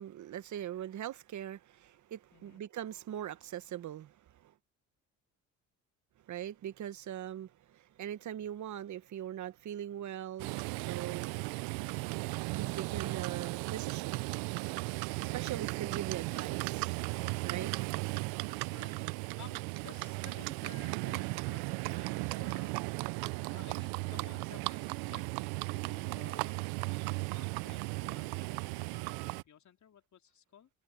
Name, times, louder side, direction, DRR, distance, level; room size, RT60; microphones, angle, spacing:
voice 1, 0.0-4.5 6.3-14.1 15.2-17.7, right 11 dB, 50° right, 1.3 m, -42 dB
voice 2, 2.3-2.6 18.7-19.0 19.4-22.8 23.5-25.2 25.7-26.6 27.3-30.7, left 9 dB, 50° left, 3.7 m, -55 dB
Livestock farm animals working animals, 10.4-29.4, right 26 dB, 75° right, 0.7 m, -36 dB
supercardioid pair, 65°, 37 cm